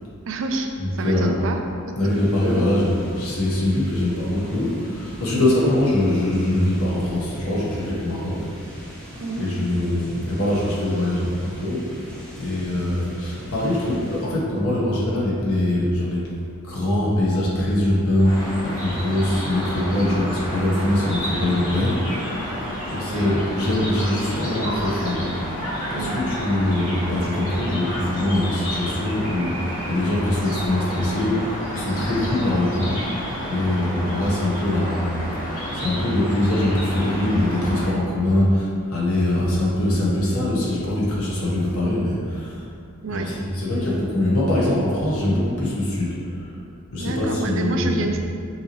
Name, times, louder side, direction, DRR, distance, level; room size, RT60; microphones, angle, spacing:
voice 1, 0.3-1.6 1.9-2.1 5.3-5.5 9.2-9.5 23.1-23.3 25.9-26.2 43.0-43.3 47.0-48.2, right 2 dB, 60° right, 4 dB, 0.4 m, -28 dB
voice 2, 0.8-1.4 1.9-8.5 9.3-11.8 12.4-16.3 16.6-22.5 22.9-25.6 25.9-33.2 33.5-42.6 43.1-46.5 46.9-48.2, left 1 dB, 85° left, -6 dB, 1.1 m, -23 dB
sound 1, 2.1-14.3, equal, 5° left, 0.6 m, -39 dB
sound 2, 18.2-37.9, equal, 35° left, 1.5 m, -30 dB
5.5 x 2.8 x 2.9 m, 2.3 s
head